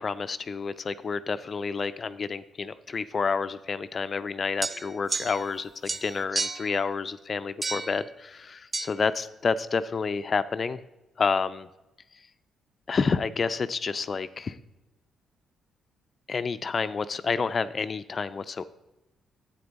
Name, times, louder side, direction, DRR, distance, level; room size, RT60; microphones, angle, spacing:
voice 1, 0.0-10.8 11.2-11.7 12.9-14.6 16.3-18.7, left 5 dB, 40° left, 13 dB, 0.4 m, -29 dB
sound 1, 4.6-5.6 5.9-6.8 7.6-8.0 8.7-8.9, right 3 dB, 20° right, 0.4 m, -31 dB
9.5 x 8.6 x 4.0 m, 0.99 s
cardioid pair, 90°, 0 cm